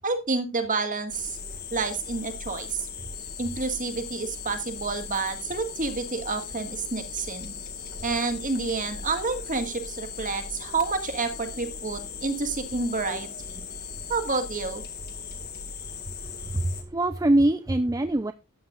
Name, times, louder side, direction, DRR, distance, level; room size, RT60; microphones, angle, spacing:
voice 1, 0.0-1.4 1.7-2.9 3.4-7.6 8.0-13.6 14.1-14.8, right 4 dB, 35° right, 7 dB, 1.8 m, -29 dB
sound 1, 1.1-16.8, left 5 dB, 45° left, 2.0 m, -38 dB
voice 2, 16.5-18.3, right 1 dB, 15° right, 9 dB, 0.5 m, -23 dB
13.5 x 9.4 x 2.4 m, 0.25 s
head